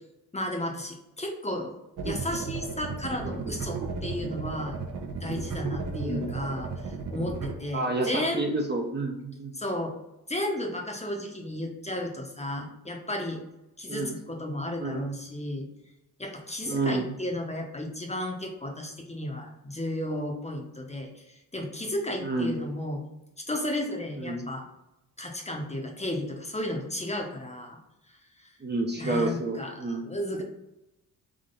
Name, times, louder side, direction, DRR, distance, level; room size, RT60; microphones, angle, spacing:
voice 1, 0.3-1.7 2.0-4.8 5.2-8.5 9.5-10.0 10.3-13.4 13.8-15.7 16.2-23.0 23.5-24.6 25.2-27.8 28.1-28.5 28.9-30.4, left 1 dB, 15° left, 1 dB, 0.9 m, -33 dB
sound 1, 2.0-7.5, right 4 dB, 55° right, 0.8 m, -34 dB
voice 2, 7.7-9.5 13.9-14.2 14.8-15.1 16.7-17.1 22.2-22.6 24.2-24.4 28.6-30.1, right 2 dB, 25° right, 1 dB, 0.8 m, -30 dB
3.8 x 3.2 x 3.8 m, 0.90 s
cardioid pair, 75°, 38 cm